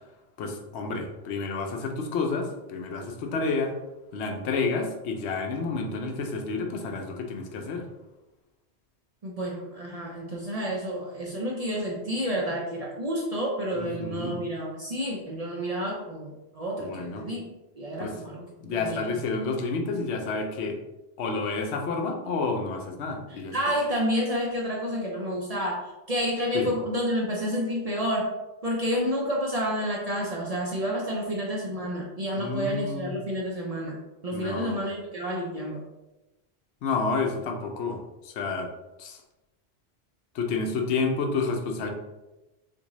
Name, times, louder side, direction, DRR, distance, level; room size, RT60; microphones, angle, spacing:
voice 1, 0.4-3.7 4.1-7.9 13.8-14.4 16.8-17.2 18.0-18.1 18.6-20.8 21.2-23.5 26.5-26.7 32.4-33.1 34.3-34.8 36.8-38.0 38.2-38.7 39.0-39.2 40.3-41.9, left 4 dB, 80° left, 3 dB, 0.9 m, -30 dB
voice 2, 9.2-17.5 17.7-18.4 18.8-19.0 23.3-28.3 28.6-34.0 34.2-35.8, equal, 50° right, -2 dB, 0.5 m, -30 dB
3.6 x 2.6 x 3.0 m, 1.0 s
omnidirectional pair, 1.1 m